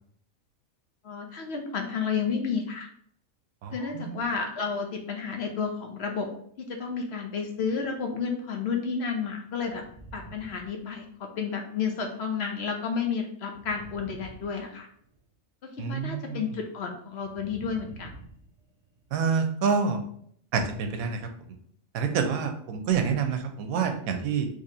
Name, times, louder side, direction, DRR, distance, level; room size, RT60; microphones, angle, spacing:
voice 1, 1.0-2.9 3.7-6.3 6.6-9.8 10.1-14.9 15.6-18.1, left 5 dB, 65° left, 3 dB, 0.7 m, -31 dB
voice 2, 3.6-4.2 15.8-16.4 19.1-20.0 20.5-21.2 21.9-24.5, right 6 dB, 90° right, 6 dB, 1.1 m, -27 dB
sound 1, 7.6-8.0 9.5-11.4 13.5-15.2 17.1-19.1, right 3 dB, 25° right, 0.7 m, -49 dB
4.0 x 3.0 x 2.7 m, 0.63 s
omnidirectional pair, 1.5 m